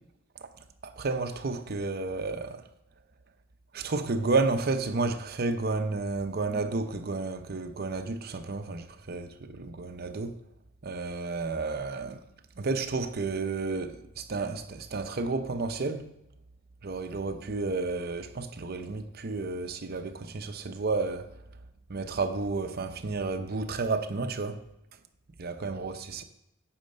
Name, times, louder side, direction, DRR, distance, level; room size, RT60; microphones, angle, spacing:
voice 1, 0.8-2.6 3.7-10.4 10.8-12.2 12.6-16.1 16.8-21.3 21.9-24.6 25.4-26.2, right 3 dB, 50° right, 0.7 m, -31 dB
8.7 x 5.1 x 6.6 m
head